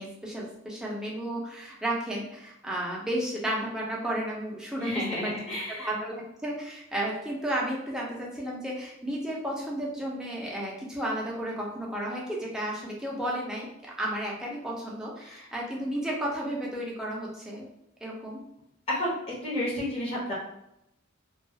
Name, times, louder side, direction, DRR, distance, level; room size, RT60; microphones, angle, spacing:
voice 1, 0.0-4.9 5.2-5.3 5.8-13.7 14.0-17.7 18.0-18.4, right 1 dB, 5° right, -4 dB, 0.5 m, -33 dB
voice 2, 4.8-5.9 15.2-15.5 18.9-19.1 19.4-20.3, left 1 dB, 30° left, -6 dB, 0.9 m, -31 dB
2.3 x 2.3 x 2.7 m, 0.81 s
head